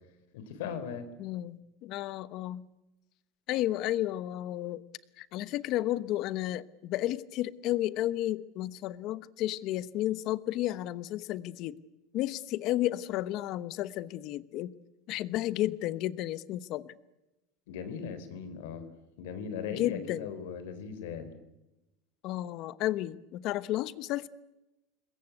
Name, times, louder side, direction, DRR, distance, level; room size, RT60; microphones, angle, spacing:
voice 1, 0.3-1.1 17.7-18.9 19.2-21.3, left 6 dB, 85° left, 11 dB, 4.0 m, -38 dB
voice 2, 1.2-2.7 3.5-4.8 5.2-11.8 12.1-14.7 15.1-16.9 19.7-20.3 22.2-24.3, left 14 dB, 50° left, 16 dB, 1.0 m, -32 dB
27.0 x 22.0 x 8.2 m, 1.0 s
supercardioid pair, 150°, 0 cm